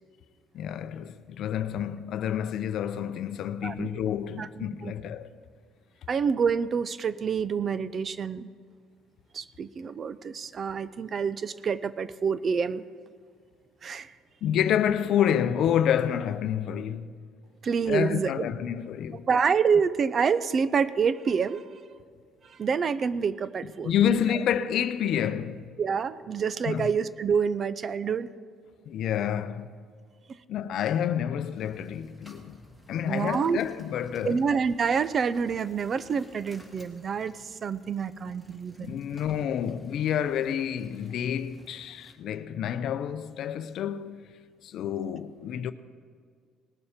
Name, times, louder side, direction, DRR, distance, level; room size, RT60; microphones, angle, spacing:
voice 1, 0.5-5.3 14.4-17.1 17.9-19.3 23.8-25.6 26.7-26.9 28.9-29.7 30.5-32.6 32.9-34.4 38.8-44.2 44.6-45.7, left 9 dB, 60° left, 0.6 m, -28 dB
voice 2, 4.4-4.9 6.1-8.5 9.3-12.8 13.8-14.2 17.6-18.5 19.3-21.7 22.4-24.1 25.8-28.3 33.1-33.6 34.2-39.0, right 6 dB, 40° right, 0.4 m, -27 dB
sound 1, 31.5-42.1, left 1 dB, 10° right, 1.7 m, -56 dB
19.0 x 7.1 x 5.0 m
cardioid pair, 115°, 0 cm